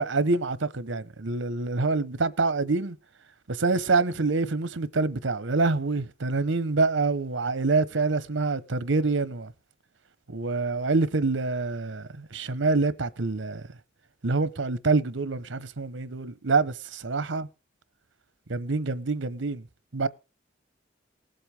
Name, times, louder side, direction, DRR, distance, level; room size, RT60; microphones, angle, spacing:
voice 1, 0.0-3.0 3.5-9.5 10.3-13.6 14.2-17.5 18.5-19.6 19.9-20.1, right 3 dB, 80° right, 0.9 m, -26 dB
19.5 x 7.8 x 3.5 m
head